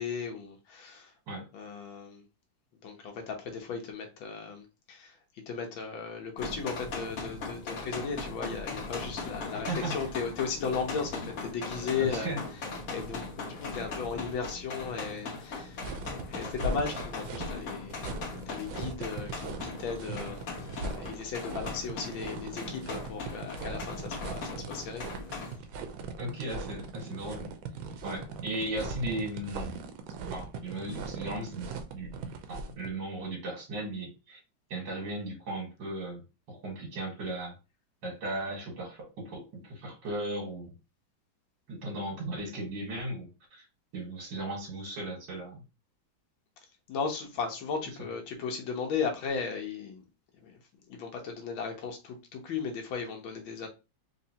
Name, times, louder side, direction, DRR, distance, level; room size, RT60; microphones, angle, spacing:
voice 1, 0.0-1.1 1.5-2.2 2.8-5.2 5.5-12.3 12.9-15.8 16.3-18.0 18.5-20.4 20.8-25.0 46.9-50.0 50.4-50.6 50.9-53.7, left 5 dB, 90° left, 1.7 m, -36 dB
sound 1, 6.4-25.6, left 3 dB, 55° left, 1.1 m, -39 dB
voice 2, 9.5-10.0 12.0-12.4 26.2-27.5 28.0-29.7 30.3-34.4 34.7-36.2 36.5-37.5 38.0-40.6 41.7-43.6 43.9-45.6 48.0-48.1, right 1 dB, 75° right, 2.3 m, -36 dB
sound 2, 15.8-32.9, right 3 dB, 90° right, 1.4 m, -39 dB
4.5 x 3.0 x 2.8 m
omnidirectional pair, 2.1 m